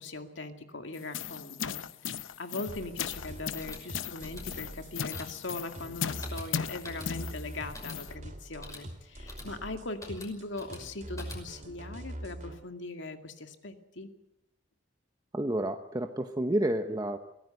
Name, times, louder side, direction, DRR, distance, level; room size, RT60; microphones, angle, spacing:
voice 1, 0.0-14.1, left 2 dB, 70° left, 6 dB, 2.3 m, -40 dB
sound 1, 0.9-8.1, left 7 dB, 85° left, 0.7 m, -37 dB
sound 2, 2.7-12.5, right 1 dB, 40° right, 3.0 m, -43 dB
sound 3, 3.5-11.7, left 2 dB, 15° left, 5.7 m, -49 dB
voice 2, 15.3-17.2, right 1 dB, 20° right, 6 dB, 0.9 m, -30 dB
23.0 x 17.0 x 8.0 m, 0.85 s
head